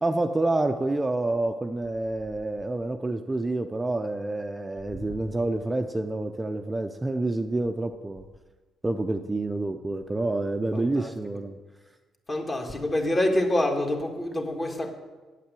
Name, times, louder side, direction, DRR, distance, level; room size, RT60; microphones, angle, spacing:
voice 1, 0.0-8.3 8.8-11.6, right 2 dB, 20° right, 0.6 m, -28 dB
voice 2, 10.7-11.1 12.3-14.9, left 1 dB, 30° left, 1.8 m, -26 dB
8.6 x 8.2 x 7.6 m
cardioid pair, 90°, 0 cm